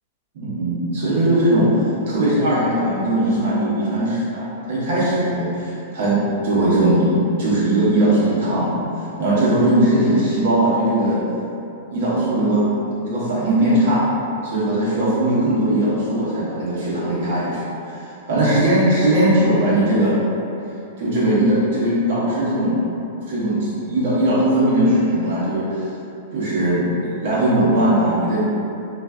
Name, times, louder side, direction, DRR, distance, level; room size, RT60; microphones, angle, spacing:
voice 1, 0.3-8.8 9.2-11.2 11.9-12.7 13.0-14.1 14.4-20.2 21.0-22.9 23.3-25.9 26.3-28.5, right 1 dB, 65° right, -8 dB, 1.0 m, -19 dB
3.1 x 2.5 x 2.4 m, 2.7 s
hypercardioid pair, 110°, 0 cm